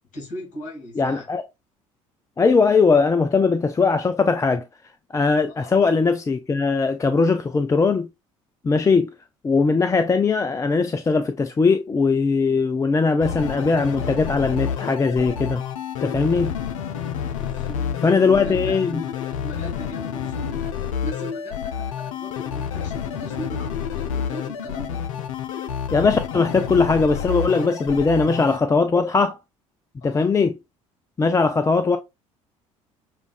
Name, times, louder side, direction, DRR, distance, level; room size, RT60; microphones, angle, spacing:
voice 1, 0.1-1.3 5.5-5.7 17.4-25.1 30.0-30.3, left 1 dB, 45° left, 2.4 m, -38 dB
voice 2, 1.0-1.4 2.4-4.6 5.1-8.1 8.6-9.1 9.4-15.6 16.0-16.5 18.0-19.0 25.9-29.4 30.0-30.6 31.2-32.0, left 4 dB, 20° left, 0.4 m, -20 dB
sound 1, 13.2-28.6, left 8 dB, 75° left, 0.5 m, -29 dB
7.1 x 2.4 x 2.3 m
figure-of-eight pair, 60°, 17 cm